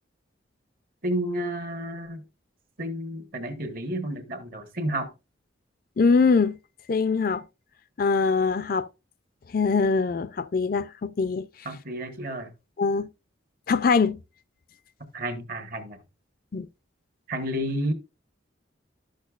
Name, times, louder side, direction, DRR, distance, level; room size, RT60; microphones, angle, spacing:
voice 1, 1.0-2.2 2.8-5.1 11.6-12.5 15.1-16.0 17.3-17.9, right 1 dB, 45° right, 1.2 m, -31 dB
voice 2, 6.0-6.5 6.9-7.4 8.0-8.9 9.5-11.5 12.8-13.1 13.7-14.2 16.5-16.7, left 4 dB, 45° left, 0.4 m, -22 dB
11.5 x 6.4 x 2.4 m
head